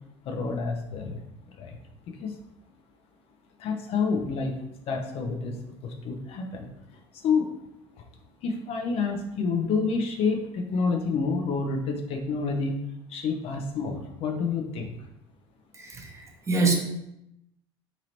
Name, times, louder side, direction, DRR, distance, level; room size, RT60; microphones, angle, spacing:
voice 1, 0.3-1.2 1.6-1.7 2.2-2.3 3.6-4.5 4.9-5.6 5.8-6.7 7.2-7.5 8.4-12.8 13.1-14.9, left 4 dB, 45° left, 4 dB, 0.6 m, -28 dB
voice 2, 15.7-16.7, right 3 dB, 20° right, 2 dB, 0.9 m, -26 dB
4.8 x 3.0 x 2.8 m, 0.84 s
figure-of-eight pair, 65°, 14 cm